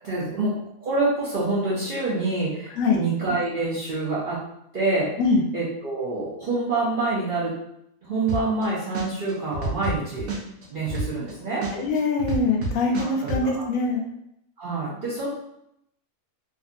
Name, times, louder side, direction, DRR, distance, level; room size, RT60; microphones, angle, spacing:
voice 1, 0.0-4.4 4.7-5.1 5.5-7.6 8.0-10.3 10.7-11.7 13.0-13.6 14.6-15.3, right 3 dB, 55° right, -7 dB, 0.6 m, -27 dB
sound 1, 8.3-8.6 8.9-11.3 11.6-13.4, right 2 dB, 80° right, 1.1 m, -28 dB
voice 2, 11.7-14.0, left 3 dB, 75° left, 1 dB, 0.9 m, -23 dB
2.6 x 2.5 x 2.4 m, 0.77 s
omnidirectional pair, 1.4 m